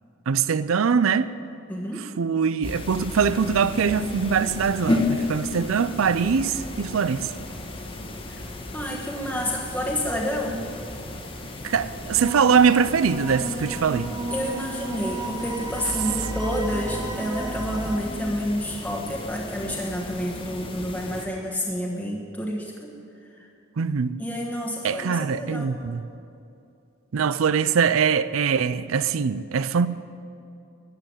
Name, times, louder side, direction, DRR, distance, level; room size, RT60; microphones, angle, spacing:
voice 1, 0.3-1.3 2.0-7.3 11.6-14.1 23.8-24.2 24.8-26.1 27.1-29.9, right 6 dB, 90° right, 0.5 m, -22 dB
voice 2, 1.7-2.0 8.3-8.4 8.7-10.6 14.3-22.9 24.2-25.7, equal, 5° left, 1.3 m, -29 dB
sound 1, 2.6-21.3, left 2 dB, 25° left, 1.3 m, -34 dB
sound 2, 12.2-18.0, right 1 dB, 20° right, 1.0 m, -33 dB
13.5 x 7.9 x 9.8 m
head